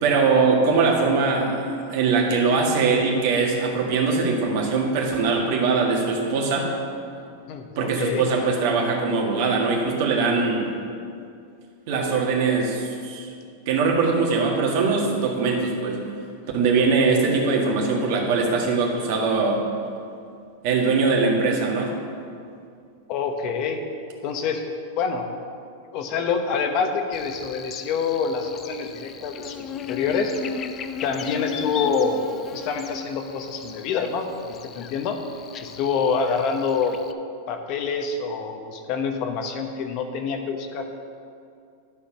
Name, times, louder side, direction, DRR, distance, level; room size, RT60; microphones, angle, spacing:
voice 1, 0.0-6.7 7.8-10.7 11.9-13.3 13.7-16.0 16.5-19.6 20.6-21.9, right 4 dB, 60° right, 0 dB, 1.8 m, -21 dB
voice 2, 7.5-8.2 23.1-23.8 24.2-24.6 25.0-25.3 25.9-30.3 31.0-32.3 32.5-35.2 35.6-37.0 37.5-40.9, left 5 dB, 45° left, 5 dB, 1.0 m, -26 dB
Buzz, 27.1-37.1, left 6 dB, 30° left, 0.5 m, -36 dB
12.0 x 5.0 x 5.9 m, 2.4 s
supercardioid pair, 130°, 0 cm